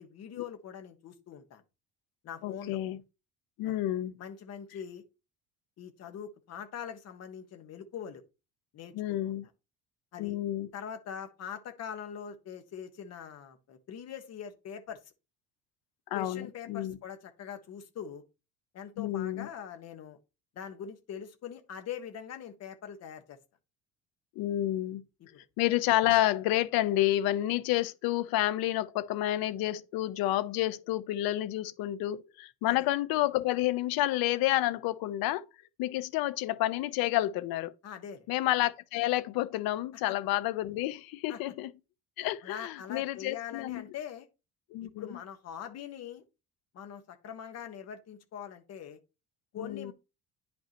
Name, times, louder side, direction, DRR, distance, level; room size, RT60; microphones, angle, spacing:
voice 1, 0.0-1.6 2.2-2.8 3.6-3.8 4.2-5.0 5.8-8.2 8.7-9.3 10.1-10.4 10.7-15.0 16.1-18.2 18.7-20.2 20.5-23.4 32.6-32.9 37.8-38.2 39.9-40.1 41.3-41.4 42.4-44.3 44.8-46.2 46.7-49.0 49.5-49.9, left 8 dB, 45° left, 1.4 m, -43 dB
voice 2, 2.4-3.0 3.6-4.1 8.9-9.5 10.2-10.7 16.1-17.0 19.0-19.5 24.4-25.0 25.6-35.4 35.8-37.7 38.3-41.7 42.2-43.8 44.7-45.2 49.6-49.9, left 15 dB, 75° left, 0.8 m, -29 dB
10.0 x 5.3 x 3.0 m
cardioid pair, 155°, 36 cm